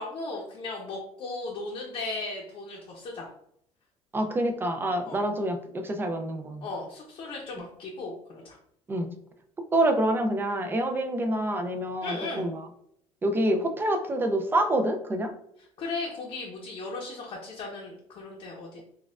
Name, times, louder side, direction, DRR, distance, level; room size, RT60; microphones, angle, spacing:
voice 1, 0.0-3.3 5.1-5.2 6.6-8.6 12.0-12.4 15.8-18.8, left 3 dB, 50° left, -3 dB, 0.7 m, -36 dB
voice 2, 4.1-6.7 8.9-9.1 9.7-12.7 13.2-15.3, right 1 dB, 20° right, 5 dB, 0.4 m, -27 dB
4.1 x 2.3 x 2.4 m, 0.72 s
cardioid pair, 120°, 12 cm